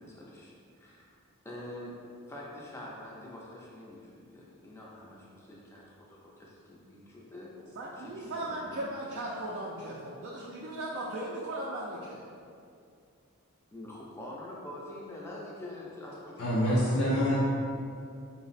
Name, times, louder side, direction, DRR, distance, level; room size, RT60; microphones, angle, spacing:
voice 1, 0.0-2.0 2.3-7.5 8.0-8.9 13.7-17.3, left 1 dB, 10° left, -4 dB, 0.4 m, -45 dB
voice 2, 7.8-12.2, right 1 dB, 50° right, -5 dB, 0.3 m, -37 dB
voice 3, 16.4-17.4, equal, 85° left, -7 dB, 0.6 m, -26 dB
4.0 x 2.0 x 4.0 m, 2.4 s
head